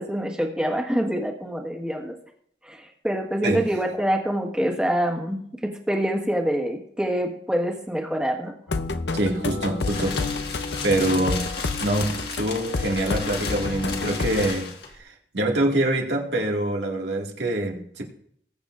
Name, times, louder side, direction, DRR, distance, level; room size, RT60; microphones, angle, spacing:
voice 1, 0.0-2.2 2.6-8.6, equal, 5° right, 1 dB, 1.6 m, -26 dB
sound 1, 8.7-14.5, left 3 dB, 80° left, 0.7 m, -29 dB
voice 2, 9.1-10.2 10.8-11.5 11.8-18.0, right 1 dB, 80° right, 0 dB, 2.2 m, -25 dB
sound 2, 9.3-15.0, left 5 dB, 65° left, 1.8 m, -35 dB
20.5 x 8.2 x 2.6 m, 0.66 s
head